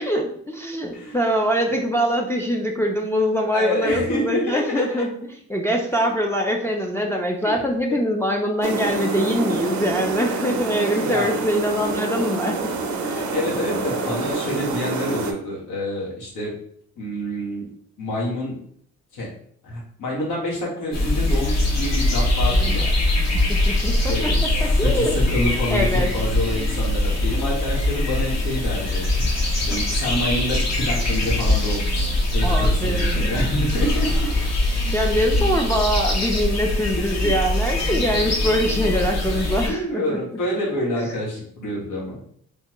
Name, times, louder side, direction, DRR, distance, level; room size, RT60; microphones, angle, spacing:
voice 1, 0.0-5.2 5.5-12.8 13.0-13.3 22.5-22.9 23.5-24.1 24.6-25.2 25.7-26.1 32.4-33.3 34.9-40.2, equal, 10° left, 0 dB, 0.4 m, -23 dB
voice 2, 3.5-5.1 5.9-6.1 7.4-7.6 7.9-8.0 11.0-11.3 13.2-16.6 17.0-17.7 18.0-18.6 19.1-19.3 19.6-22.9 24.1-24.4 24.8-29.1 29.7-34.3 37.0-37.3 39.7-42.2, left 1 dB, 85° left, -4 dB, 1.4 m, -27 dB
sound 1, 8.6-15.3, right 3 dB, 70° right, 0.6 m, -27 dB
sound 2, 20.9-39.7, left 1 dB, 60° left, 1.1 m, -22 dB
3.3 x 2.1 x 3.0 m, 0.64 s
cardioid pair, 90°, 30 cm